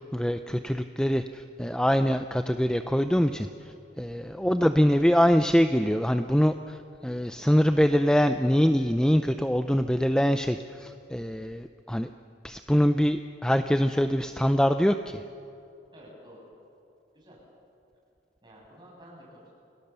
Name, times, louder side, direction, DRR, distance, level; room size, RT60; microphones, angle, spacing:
voice 1, 0.1-3.5 4.0-6.8 7.0-12.1 12.4-15.0, equal, 5° left, 8 dB, 0.4 m, -24 dB
voice 2, 15.9-16.5 17.1-17.4 18.4-19.5, equal, 25° right, -3 dB, 6.5 m, -51 dB
28.0 x 18.0 x 6.9 m, 2.6 s
head